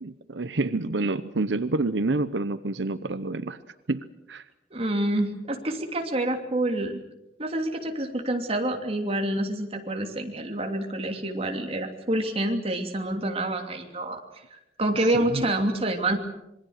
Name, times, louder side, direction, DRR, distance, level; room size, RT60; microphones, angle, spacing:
voice 1, 0.0-3.6 3.9-4.4 15.1-15.5, right 2 dB, 90° right, 13 dB, 0.9 m, -28 dB
voice 2, 4.7-7.0 7.4-14.2 14.5-16.2, right 1 dB, 35° right, 3 dB, 2.9 m, -27 dB
26.5 x 22.0 x 6.6 m, 0.90 s
head